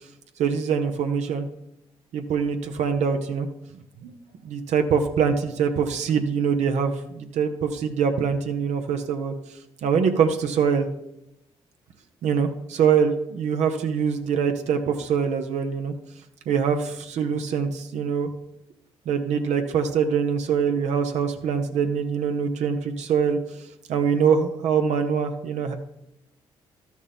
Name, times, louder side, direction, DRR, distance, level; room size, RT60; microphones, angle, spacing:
voice 1, 0.4-1.5 2.1-3.5 4.0-4.1 4.4-9.3 9.8-10.9 12.2-15.9 16.5-18.3 19.1-23.4 23.9-25.7, right 6 dB, 70° right, 5 dB, 0.9 m, -24 dB
12.0 x 6.3 x 3.6 m, 0.84 s
supercardioid pair, 55°, 12 cm